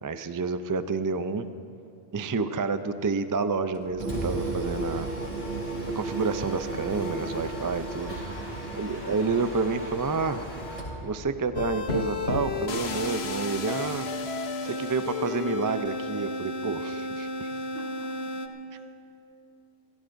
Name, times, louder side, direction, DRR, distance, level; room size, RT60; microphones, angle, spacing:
voice 1, 0.0-1.5 2.1-5.1 6.0-8.2 8.7-10.4 11.0-14.1 14.6-17.5, right 4 dB, 35° right, 10 dB, 0.3 m, -29 dB
Mechanisms, 3.7-11.0, left 1 dB, 35° left, 4.3 m, -39 dB
sound 1, 4.0-11.1, right 4 dB, 55° right, 0.8 m, -36 dB
voice 2, 8.2-8.6 17.5-18.1 18.7-19.0, right 1 dB, 80° right, -3 dB, 3.8 m, -47 dB
sound 2, 11.5-18.5, left 2 dB, 70° left, 1.2 m, -32 dB
29.0 x 16.0 x 2.6 m, 2.7 s
omnidirectional pair, 1.1 m